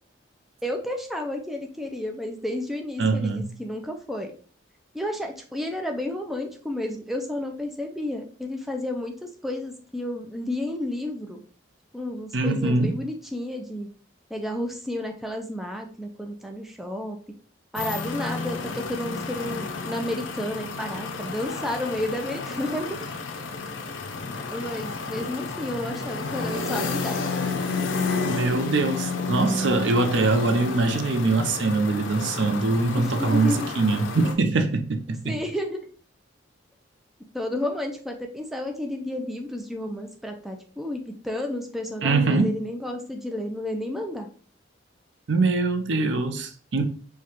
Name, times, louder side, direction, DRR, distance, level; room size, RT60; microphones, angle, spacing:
voice 1, 0.6-4.3 4.9-11.4 11.9-13.9 14.3-17.2 17.7-23.0 24.5-27.2 33.0-33.7 35.2-35.8 37.3-44.3, left 1 dB, ahead, 0.4 m, -31 dB
voice 2, 3.0-3.5 12.3-13.0 28.2-35.4 42.0-42.5 45.3-46.9, right 3 dB, 70° right, 0.5 m, -23 dB
sound 1, 17.8-34.3, left 3 dB, 80° left, 0.5 m, -31 dB
4.7 x 2.2 x 2.9 m
head